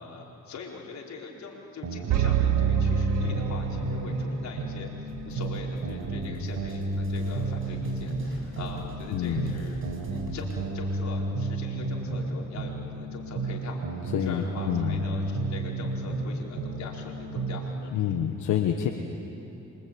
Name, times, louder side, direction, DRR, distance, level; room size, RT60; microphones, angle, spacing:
voice 1, 0.0-9.8 10.1-18.2, left 5 dB, 65° left, -1 dB, 4.7 m, -43 dB
sound 1, 1.8-4.3 4.6-8.3 8.6-12.3 12.6-16.3 16.6-17.6, right 2 dB, 60° right, 4.9 m, -32 dB
sound 2, 2.1-4.2, right 9 dB, 85° right, 1.6 m, -25 dB
sound 3, 5.1-10.7, right 3 dB, 45° right, 6.4 m, -44 dB
voice 2, 9.1-9.5 14.1-15.0 17.9-18.9, left 10 dB, 85° left, 4 dB, 1.5 m, -27 dB
27.5 x 24.0 x 8.8 m, 3.0 s
cardioid pair, 90°, 30 cm